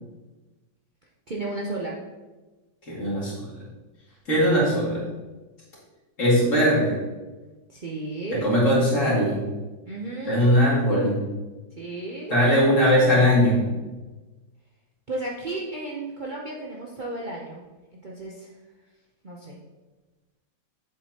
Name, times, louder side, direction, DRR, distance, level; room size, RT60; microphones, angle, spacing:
voice 1, 1.3-2.0 7.7-8.5 9.8-10.6 11.8-12.4 15.1-17.6 18.0-18.5 19.2-19.6, right 2 dB, 85° right, -3 dB, 0.4 m, -33 dB
voice 2, 2.8-3.5 4.3-5.0 6.2-7.0 8.3-9.4 10.3-11.2 12.3-13.6, equal, 40° left, -6 dB, 2.7 m, -20 dB
7.5 x 7.5 x 2.9 m, 1.2 s
omnidirectional pair, 2.1 m